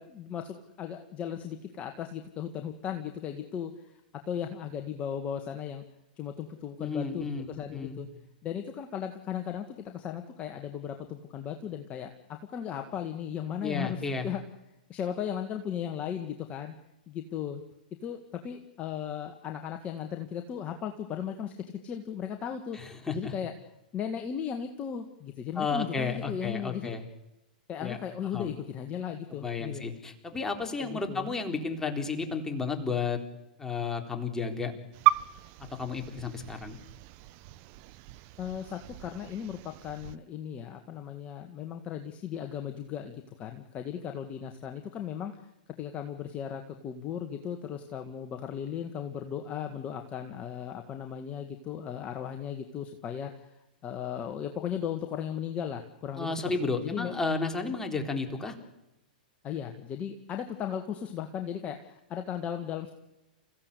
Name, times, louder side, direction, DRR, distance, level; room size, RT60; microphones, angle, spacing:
voice 1, 0.0-5.8 6.2-8.1 8.4-14.4 14.9-16.7 17.1-17.6 18.0-21.5 21.8-22.8 23.1-23.5 23.9-27.0 27.7-29.8 30.8-31.3 38.4-45.4 45.8-53.5 53.8-57.1 59.4-62.9, left 8 dB, 30° left, 5 dB, 1.9 m, -36 dB
voice 2, 6.8-8.0 13.6-14.3 22.7-23.3 25.6-27.0 27.8-28.0 28.3-28.6 29.4-33.2 33.6-34.7 35.8-36.8 56.2-58.6, left 4 dB, 10° left, 3 dB, 3.9 m, -32 dB
sound 1, 34.9-40.2, right 17 dB, 40° right, 1.0 m, -33 dB
28.5 x 16.0 x 8.5 m, 0.92 s
hypercardioid pair, 110°, 5 cm